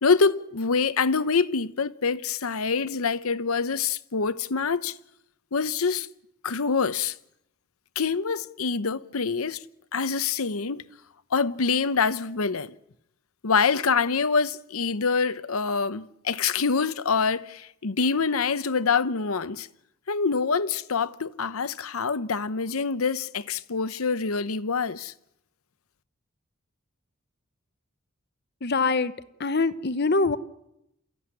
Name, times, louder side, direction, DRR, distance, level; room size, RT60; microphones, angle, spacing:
voice 1, 0.0-5.0 5.5-6.1 6.4-7.2 8.0-9.6 9.9-10.8 11.3-12.7 13.4-19.7 20.1-25.1, left 5 dB, 90° left, 0.8 m, -25 dB
voice 2, 28.6-29.1 29.4-30.4, left 3 dB, 50° left, 0.9 m, -23 dB
28.0 x 14.5 x 9.8 m
head